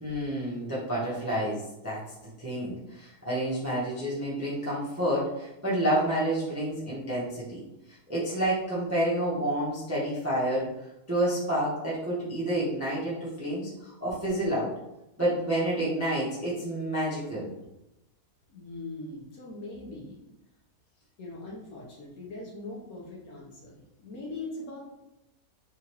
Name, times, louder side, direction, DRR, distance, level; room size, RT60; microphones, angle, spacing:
voice 1, 0.0-2.0 2.4-7.6 7.9-10.7 11.1-14.7 15.2-17.5, right 1 dB, 15° right, -7 dB, 0.6 m, -29 dB
voice 2, 18.5-20.3 21.2-24.8, left 2 dB, 60° left, -3 dB, 1.2 m, -41 dB
3.6 x 3.4 x 3.0 m, 0.91 s
omnidirectional pair, 1.9 m